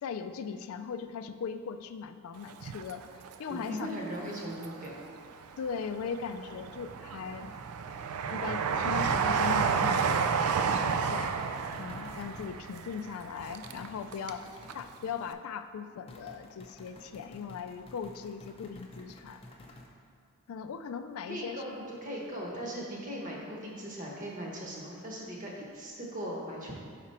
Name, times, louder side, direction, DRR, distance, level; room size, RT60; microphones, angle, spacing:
voice 1, 0.0-3.1 3.4-3.9 5.6-7.5 8.3-10.3 10.6-11.4 11.8-14.5 14.7-19.4 20.5-21.6, left 6 dB, 75° left, 10 dB, 0.3 m, -39 dB
Train, 2.5-3.7 4.2-5.1 5.7-14.4 14.7-14.8, right 6 dB, 90° right, 0.4 m, -31 dB
voice 2, 3.5-5.0 21.3-26.7, equal, 35° right, -3 dB, 1.1 m, -39 dB
sound 1, 10.7-12.5 13.4-14.9 16.1-19.9, left 1 dB, 25° left, 0.5 m, -51 dB
6.0 x 4.9 x 4.2 m, 2.2 s
head